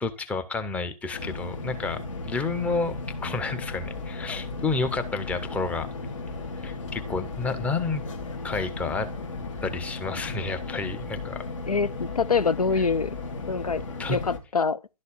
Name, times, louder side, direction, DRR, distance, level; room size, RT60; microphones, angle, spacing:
voice 1, 0.0-3.0 3.2-5.9 6.6-8.0 8.4-9.1 9.6-11.5 14.0-14.2, left 4 dB, 5° left, 0.8 m, -30 dB
sound 1, 1.1-14.4, left 3 dB, 55° left, 2.3 m, -35 dB
voice 2, 11.7-13.1 13.5-14.8, left 5 dB, 75° left, 0.6 m, -25 dB
11.5 x 4.2 x 6.9 m
figure-of-eight pair, 120°, 19 cm